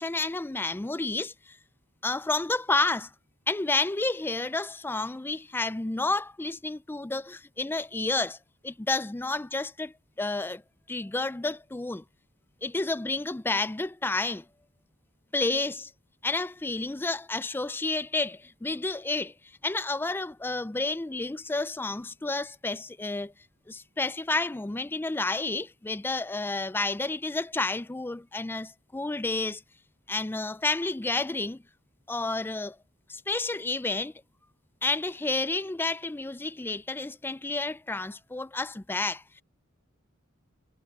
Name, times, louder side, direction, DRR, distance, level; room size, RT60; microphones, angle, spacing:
voice 1, 0.0-1.6 2.0-3.1 3.5-8.4 8.6-10.6 10.9-12.0 12.6-14.5 15.3-15.9 16.2-19.3 19.6-23.3 23.7-29.6 30.1-31.6 32.1-32.8 33.1-34.1 34.8-39.4, left 3 dB, 10° left, 0.4 m, -30 dB
head